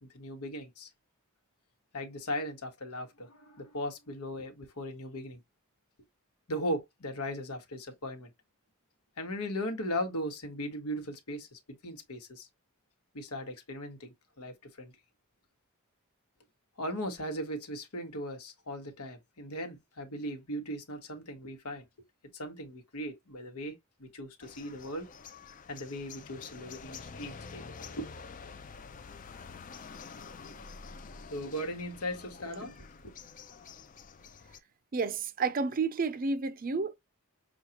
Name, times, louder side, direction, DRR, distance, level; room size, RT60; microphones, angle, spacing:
voice 1, 0.0-0.9 1.9-5.4 6.5-8.3 9.2-12.5 13.1-14.9 16.8-21.8 22.3-25.1 25.7-28.1 31.3-32.8 33.0-33.1, equal, 90° left, 1.3 m, -38 dB
sound 1, 24.4-34.6, left 5 dB, 35° left, 0.4 m, -48 dB
voice 2, 34.9-36.9, right 4 dB, 40° right, 0.4 m, -31 dB
6.3 x 2.3 x 2.9 m
head